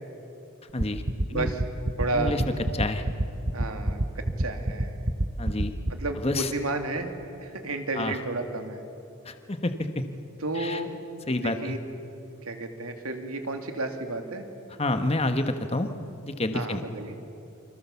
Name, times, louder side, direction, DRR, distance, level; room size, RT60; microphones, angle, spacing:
voice 1, 0.7-1.0 1.3-1.5 2.1-2.4 2.7-3.0 5.4-5.7 6.2-6.5 8.0-8.1 9.2-10.0 10.5-10.8 11.3-11.7 14.8-15.9 16.2-16.8, left 2 dB, 25° left, 8 dB, 1.3 m, -28 dB
sound 1, 0.8-5.9, right 1 dB, 35° right, 1.1 m, -25 dB
voice 2, 1.3-1.6 2.0-2.4 3.5-4.0 4.4-5.0 5.9-7.1 7.4-8.8 10.4-10.9 11.3-11.8 12.4-14.4 16.5-17.2, right 2 dB, 80° right, 5 dB, 2.7 m, -32 dB
29.0 x 26.0 x 7.1 m, 2.8 s
head